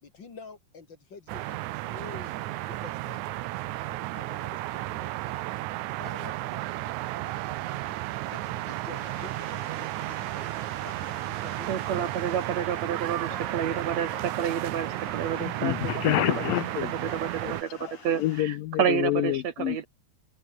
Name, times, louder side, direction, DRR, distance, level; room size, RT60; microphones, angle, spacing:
voice 1, 0.0-3.4 3.9-5.5 6.0-12.3 12.6-12.8 13.3-15.5 16.1-16.3 17.1-17.8, left 4 dB, 35° left, 2.8 m, -49 dB
sound 1, 1.3-17.6, right 17 dB, 80° right, 1.8 m, -33 dB
sound 2, 9.0-18.4, left 5 dB, 60° left, 6.1 m, -50 dB
voice 2, 11.7-15.7 16.4-16.5 17.2-17.3 17.6-17.7 18.0-19.8, right 8 dB, 60° right, 2.3 m, -29 dB
voice 3, 15.4-17.1 17.8-17.9 18.2-19.8, left 16 dB, 80° left, 2.5 m, -28 dB
omnidirectional pair, 4.0 m